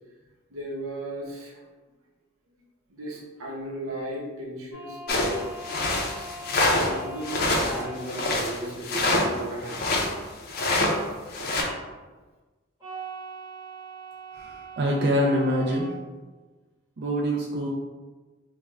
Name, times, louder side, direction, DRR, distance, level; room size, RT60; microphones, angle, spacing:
voice 1, 0.5-1.6 2.9-5.4 6.7-10.2 11.4-11.6, right 1 dB, 85° right, -2 dB, 0.8 m, -36 dB
sound 1, 4.7-8.0 12.8-15.8, right 2 dB, 15° right, 1.3 m, -41 dB
sound 2, 5.1-7.0 7.2-10.1 10.5-10.9 11.3-11.6, left 2 dB, 45° left, 0.4 m, -25 dB
voice 2, 14.3-15.9 17.0-17.7, equal, 50° right, -3 dB, 0.3 m, -25 dB
3.2 x 2.1 x 3.5 m, 1.3 s
head